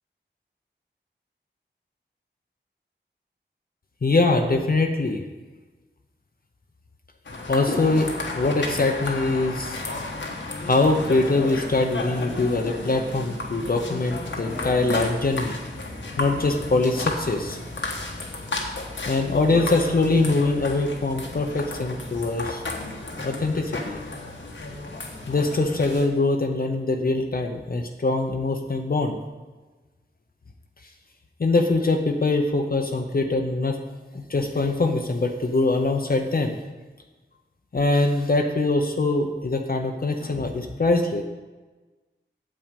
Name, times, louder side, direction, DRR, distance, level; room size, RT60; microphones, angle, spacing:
voice 1, 4.0-5.2 7.5-9.8 10.7-15.6 16.1-17.6 19.1-22.6 23.2-24.0 25.3-29.2 31.4-33.8 34.1-36.6 37.7-41.3, left 2 dB, 50° left, 3 dB, 0.8 m, -23 dB
sound 1, 7.2-26.1, left 2 dB, 80° left, 1.3 m, -33 dB
8.8 x 7.7 x 5.2 m, 1.3 s
wide cardioid pair, 80°, 19 cm